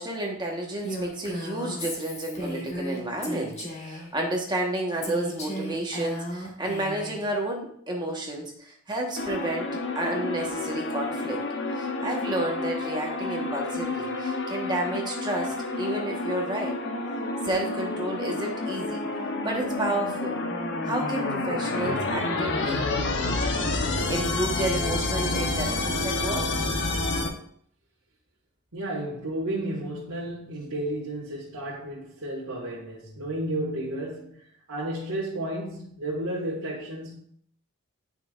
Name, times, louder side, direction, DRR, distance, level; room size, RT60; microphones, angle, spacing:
voice 1, 0.0-11.4 11.7-16.8 17.4-19.1 19.4-20.4 20.8-22.9 23.9-26.5, right 1 dB, 20° right, 1.3 m, -31 dB
Female speech woman speaking, 0.8-4.1 5.0-7.3, equal, 30° left, 1.4 m, -35 dB
sound 1, 9.2-27.3, left 2 dB, 55° left, 0.9 m, -29 dB
voice 2, 28.7-37.2, right 1 dB, 85° right, 1.8 m, -32 dB
9.6 x 5.7 x 2.5 m
head